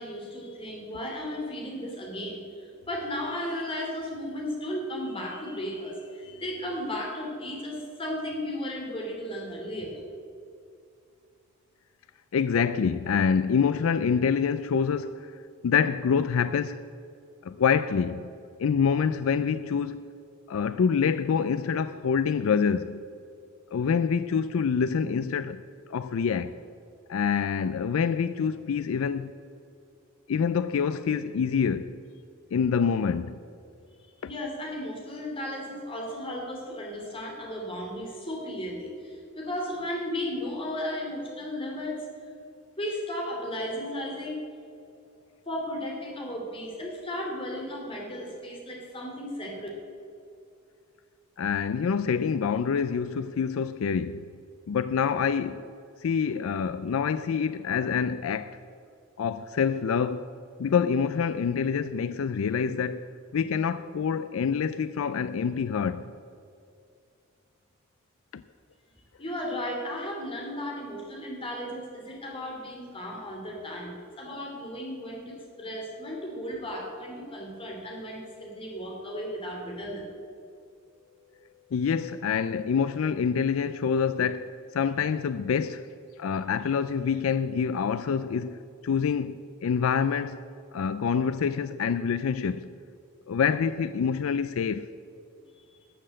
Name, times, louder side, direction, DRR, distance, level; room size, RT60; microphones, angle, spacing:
voice 1, 0.0-10.0 34.2-42.1 42.8-44.4 45.5-49.7 69.2-80.0 95.6-95.8, left 1 dB, 25° left, 2.6 m, -35 dB
voice 2, 12.3-15.3 15.6-16.8 17.4-18.3 18.6-20.1 20.5-23.0 23.7-25.6 25.9-26.5 27.1-29.3 30.3-31.9 32.5-33.4 51.4-54.2 54.7-55.7 56.0-58.6 59.2-60.3 60.6-63.0 63.3-66.1 68.3-68.4 81.7-85.9 86.2-90.4 90.7-92.7 93.3-94.8, left 6 dB, 70° left, 0.4 m, -26 dB
13.0 x 7.7 x 7.6 m
head